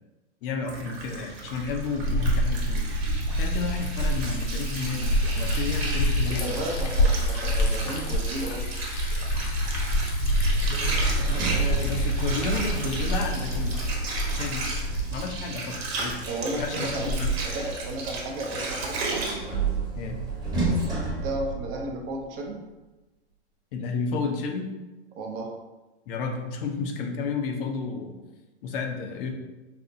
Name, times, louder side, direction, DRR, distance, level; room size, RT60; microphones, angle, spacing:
voice 1, 0.4-2.8 3.3-6.6 10.7-13.8 14.3-14.7 15.1-16.1 16.6-17.3 19.9-20.2 23.7-24.7 26.1-28.1 28.6-29.3, left 4 dB, 50° left, 3 dB, 0.6 m, -32 dB
Water, 0.7-19.3, right 3 dB, 55° right, 1.0 m, -35 dB
Liquid, 1.5-17.6, equal, 70° left, 1.0 m, -27 dB
voice 2, 6.3-8.6 16.3-17.1 17.4-19.3 21.2-22.6 25.1-25.5, right 1 dB, 30° right, 1 dB, 0.6 m, -33 dB
Sliding door, 10.8-15.7 17.3-22.2, right 4 dB, 10° right, 0.9 m, -31 dB
4.2 x 2.1 x 2.6 m, 1.1 s
hypercardioid pair, 120°, 35 cm